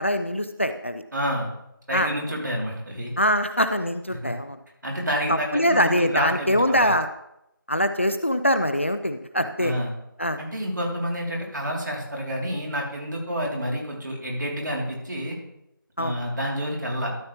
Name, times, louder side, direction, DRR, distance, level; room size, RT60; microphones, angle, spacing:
voice 1, 0.0-1.0 1.9-2.1 3.2-4.6 5.3-7.1 7.7-9.7 10.2-10.4 16.0-16.2, equal, 35° left, 10 dB, 0.4 m, -23 dB
voice 2, 1.1-1.5 1.9-3.1 4.1-4.3 4.8-6.9 9.6-9.9 10.4-15.4 16.0-17.1, equal, 55° right, -1 dB, 2.8 m, -29 dB
13.0 x 7.0 x 3.0 m, 0.83 s
figure-of-eight pair, 175°, 12 cm